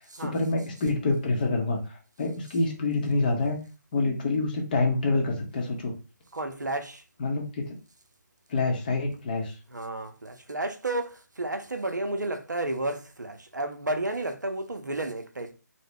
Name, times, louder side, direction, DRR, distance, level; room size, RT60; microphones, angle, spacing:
voice 1, 0.2-3.6 3.9-5.9 7.2-7.7 8.5-9.5, left 3 dB, 30° left, 0.7 m, -27 dB
voice 2, 6.3-7.0 9.7-15.5, right 2 dB, 75° right, 0.6 m, -32 dB
2.8 x 2.1 x 3.5 m
figure-of-eight pair, 145°, 10 cm